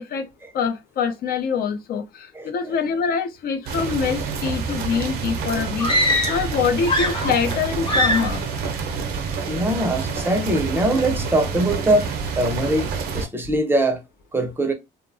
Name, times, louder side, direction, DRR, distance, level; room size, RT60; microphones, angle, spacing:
voice 1, 0.5-8.4, left 6 dB, 65° left, 0.6 m, -25 dB
voice 2, 2.3-2.8 9.5-12.1 12.4-12.9 13.1-14.0 14.3-14.7, right 1 dB, 15° right, 0.5 m, -22 dB
sound 1, 3.7-13.3, right 5 dB, 70° right, 0.5 m, -28 dB
sound 2, 5.8-6.5 6.8-7.6 7.9-8.4, left 1 dB, 30° left, 0.7 m, -22 dB
2.7 x 2.1 x 2.5 m
cardioid pair, 110°, 17 cm